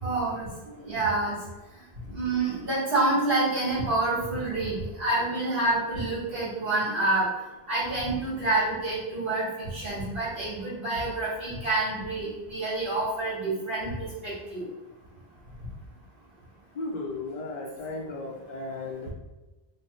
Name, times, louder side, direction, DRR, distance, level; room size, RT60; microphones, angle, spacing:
voice 1, 0.0-0.5 0.8-1.4 2.1-7.3 7.7-14.6, right 2 dB, 65° right, -8 dB, 1.3 m, -28 dB
voice 2, 16.7-19.1, left 2 dB, 55° left, 1 dB, 0.6 m, -35 dB
3.3 x 2.1 x 3.8 m, 1.1 s
omnidirectional pair, 1.1 m